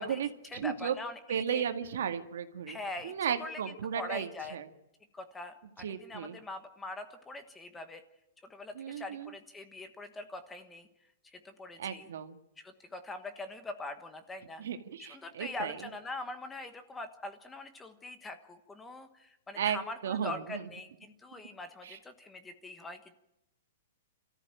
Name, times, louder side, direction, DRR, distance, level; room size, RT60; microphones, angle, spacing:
voice 1, 0.0-1.7 2.7-4.6 5.1-8.0 8.4-10.9 11.2-12.1 12.6-14.6 15.0-23.2, left 2 dB, 10° left, 9 dB, 1.3 m, -43 dB
voice 2, 0.5-0.9 1.3-2.8 3.0-4.6 5.8-6.4 8.8-9.3 11.8-12.4 14.6-15.8 19.6-19.8 20.0-20.3 21.8-22.0, right 8 dB, 70° right, 7 dB, 2.0 m, -34 dB
28.5 x 14.0 x 9.0 m, 0.86 s
hypercardioid pair, 165°, 0 cm